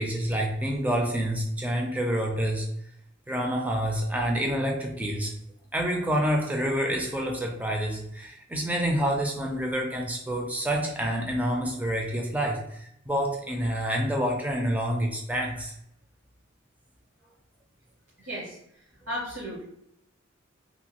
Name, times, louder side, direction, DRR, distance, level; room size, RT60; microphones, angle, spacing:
voice 1, 0.0-2.7 3.3-5.3 5.7-15.7, equal, 10° right, 1 dB, 0.4 m, -28 dB
voice 2, 18.2-19.7, equal, 70° right, -7 dB, 0.8 m, -36 dB
2.8 x 2.2 x 2.9 m, 0.76 s
head